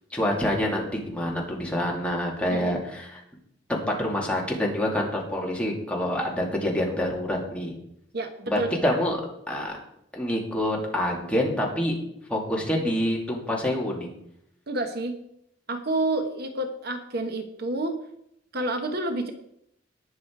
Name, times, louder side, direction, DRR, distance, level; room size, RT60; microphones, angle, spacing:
voice 1, 0.1-3.2 3.7-7.7 8.5-9.2 9.5-9.7 10.1-11.9 12.3-14.1, left 1 dB, 5° left, -2 dB, 2.7 m, -27 dB
voice 2, 8.1-9.0 14.7-15.2 15.7-18.0 18.5-19.3, right 2 dB, 55° right, 7 dB, 1.1 m, -29 dB
18.5 x 6.4 x 4.7 m, 0.76 s
head